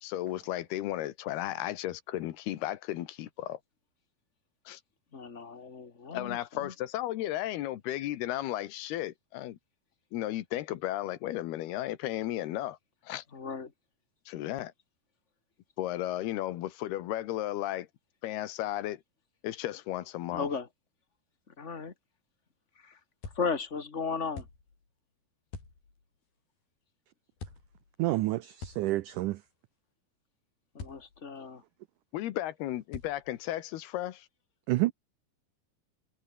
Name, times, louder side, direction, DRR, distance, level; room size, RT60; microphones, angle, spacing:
voice 1, 0.0-3.6 4.7-4.8 6.1-9.6 10.1-12.8 13.0-13.2 14.3-14.7 15.8-17.9 18.2-19.0 19.4-20.5 32.1-34.3, left 14 dB, 85° left, 3.3 m, -34 dB
voice 2, 5.1-6.7 13.3-13.7 20.3-20.7 21.6-21.9 22.8-22.9 23.3-24.4 30.7-31.6, left 5 dB, 30° left, 1.4 m, -35 dB
sound 1, 23.2-23.8 24.4-24.9 25.5-26.1 27.3-27.9 28.6-29.5 30.8-31.4 32.9-33.6, left 4 dB, 70° left, 8.9 m, -46 dB
voice 3, 28.0-29.4 34.7-34.9, right 17 dB, 90° right, 1.8 m, -28 dB
omnidirectional pair, 4.5 m